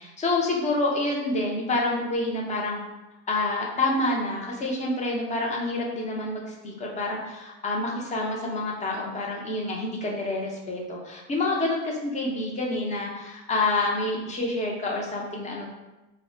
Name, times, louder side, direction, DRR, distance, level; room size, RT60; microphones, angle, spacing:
voice 1, 0.0-2.8 3.3-15.7, left 2 dB, 20° left, -1 dB, 0.5 m, -28 dB
2.1 x 2.0 x 3.7 m, 1.0 s
supercardioid pair, 110°, 40 cm